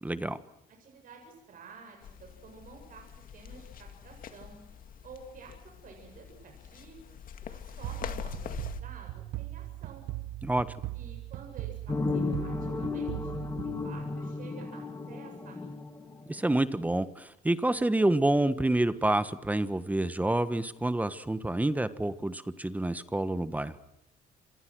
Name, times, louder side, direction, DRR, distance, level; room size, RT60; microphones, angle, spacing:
voice 1, 0.0-0.4 10.4-10.7 16.3-23.8, right 1 dB, 10° right, 12 dB, 1.4 m, -28 dB
voice 2, 0.8-4.6 5.0-10.1 10.9-15.9, right 4 dB, 55° right, 2 dB, 7.6 m, -51 dB
sound 1, 2.0-8.8, left 8 dB, 55° left, 2.2 m, -44 dB
sound 2, 7.8-14.5, right 16 dB, 80° right, 1.0 m, -40 dB
sound 3, 11.9-16.6, left 3 dB, 20° left, 2.3 m, -34 dB
27.5 x 27.0 x 6.3 m, 0.86 s
cardioid pair, 110°, 17 cm